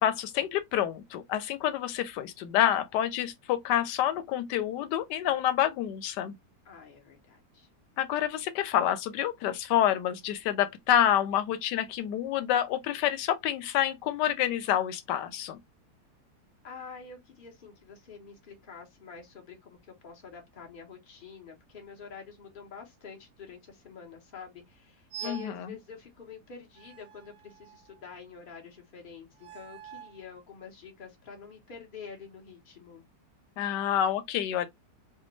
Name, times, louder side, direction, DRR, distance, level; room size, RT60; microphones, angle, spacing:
voice 1, 0.0-6.3 8.0-15.6 25.2-25.7 33.6-34.7, left 11 dB, 90° left, 1.2 m, -28 dB
voice 2, 6.6-7.7 16.6-33.0, left 6 dB, 35° left, 1.1 m, -47 dB
sound 1, 25.1-25.6 26.8-28.0 29.3-30.2, right 10 dB, 65° right, 0.8 m, -45 dB
3.4 x 2.5 x 3.0 m
omnidirectional pair, 1.8 m